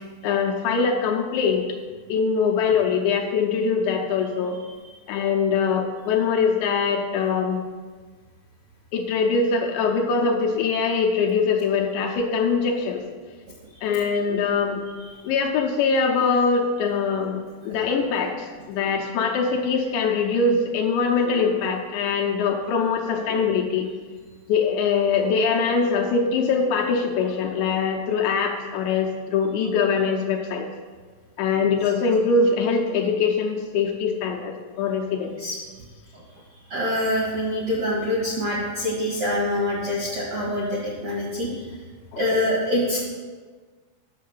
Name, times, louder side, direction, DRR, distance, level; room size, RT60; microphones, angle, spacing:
voice 1, 0.2-1.7 2.1-4.6 5.1-7.6 8.9-13.0 13.8-14.8 15.2-23.9 24.5-30.7 31.4-35.4 42.1-42.2, left 5 dB, 80° left, 1 dB, 2.9 m, -23 dB
voice 2, 36.7-41.7 42.2-43.0, left 1 dB, 60° right, -5 dB, 1.8 m, -25 dB
9.3 x 6.5 x 6.6 m, 1.5 s
omnidirectional pair, 5.5 m